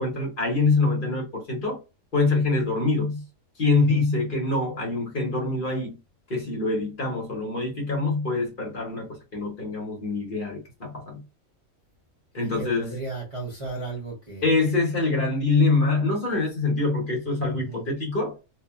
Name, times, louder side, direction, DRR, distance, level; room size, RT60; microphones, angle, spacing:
voice 1, 0.0-1.8 2.1-3.2 3.6-6.0 6.3-11.2 12.3-12.9 14.4-18.3, left 3 dB, 45° left, 1.0 m, -25 dB
voice 2, 12.4-14.6 17.3-17.8, right 3 dB, 30° right, 0.7 m, -35 dB
2.8 x 2.5 x 2.3 m
omnidirectional pair, 1.4 m